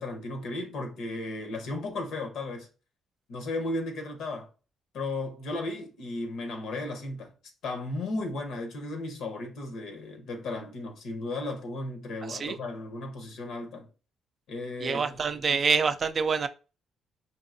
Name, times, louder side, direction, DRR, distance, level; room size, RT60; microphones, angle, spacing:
voice 1, 0.0-2.7 3.3-4.5 4.9-7.3 7.6-13.9 14.5-15.2, left 2 dB, 80° left, 0.9 m, -35 dB
voice 2, 12.2-12.6 14.8-16.5, right 5 dB, 45° right, 0.4 m, -26 dB
4.5 x 2.8 x 2.6 m
cardioid pair, 90°, 0 cm